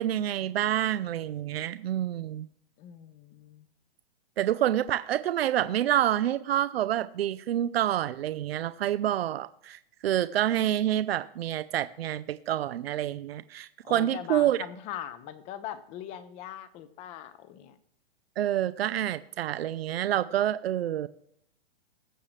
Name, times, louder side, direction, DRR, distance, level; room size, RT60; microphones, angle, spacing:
voice 1, 0.0-2.5 4.4-14.6 18.4-21.1, right 12 dB, 85° right, 13 dB, 0.6 m, -28 dB
voice 2, 2.8-3.7 13.8-17.8, left 11 dB, 20° left, 13 dB, 0.7 m, -41 dB
20.5 x 7.3 x 3.3 m, 0.70 s
hypercardioid pair, 160°, 30 cm